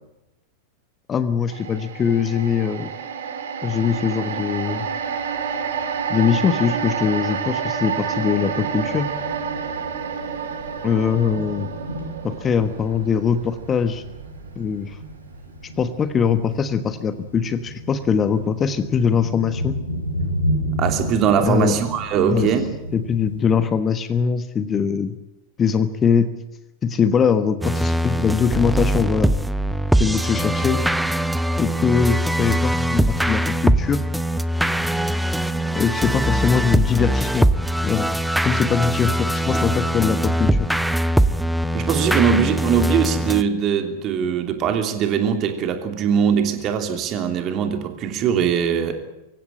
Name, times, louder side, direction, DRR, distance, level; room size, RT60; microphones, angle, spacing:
voice 1, 1.1-2.9 3.6-4.9 6.1-9.1 10.8-11.7 12.2-14.0 14.6-15.0 15.8-19.8 21.4-21.7 22.3-22.5 22.9-25.2 25.6-26.3 26.8-29.3 30.0-30.8 31.6-34.0 35.7-37.5 37.8-38.1 38.4-40.7, left 6 dB, 25° left, 11 dB, 1.3 m, -21 dB
sound 1, 1.5-15.8 16.2-16.3, right 7 dB, 60° right, 3.3 m, -29 dB
Thunder, 4.2-23.6, equal, 80° left, 4.1 m, -33 dB
voice 2, 20.8-22.7 41.7-49.0, right 7 dB, 35° right, 6 dB, 3.1 m, -21 dB
sound 2, 27.6-43.4, right 1 dB, 5° right, 0.9 m, -21 dB
24.0 x 16.0 x 8.9 m, 0.94 s
figure-of-eight pair, 90°, 0 cm